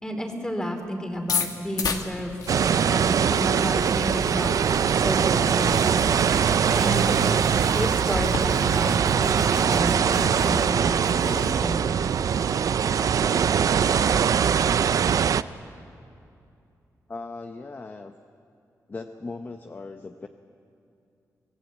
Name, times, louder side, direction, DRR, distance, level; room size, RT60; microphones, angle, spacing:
voice 1, 0.0-2.3 2.9-4.6 4.9-5.9 6.6-7.4 7.7-11.9, equal, 10° left, 5 dB, 2.8 m, -31 dB
sound 1, 1.2-8.4, left 5 dB, 75° left, 1.6 m, -35 dB
sound 2, 2.5-15.4, right 7 dB, 65° right, 0.5 m, -22 dB
sound 3, 5.6-10.8 11.0-11.6, right 1 dB, 10° right, 1.2 m, -38 dB
voice 2, 17.1-18.1 18.9-20.3, left 3 dB, 30° left, 6 dB, 0.8 m, -38 dB
24.5 x 17.5 x 8.3 m, 2.6 s
wide cardioid pair, 115°, 6 cm